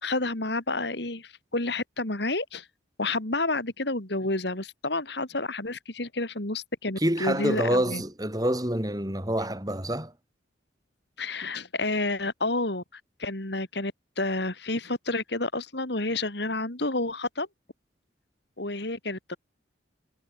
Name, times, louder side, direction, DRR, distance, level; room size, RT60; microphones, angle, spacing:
voice 1, 0.0-2.7 3.0-8.0 11.2-17.5 18.6-19.4, left 2 dB, 60° left, 3.0 m, -30 dB
voice 2, 7.0-10.1, right 1 dB, 20° right, 5.0 m, -27 dB
head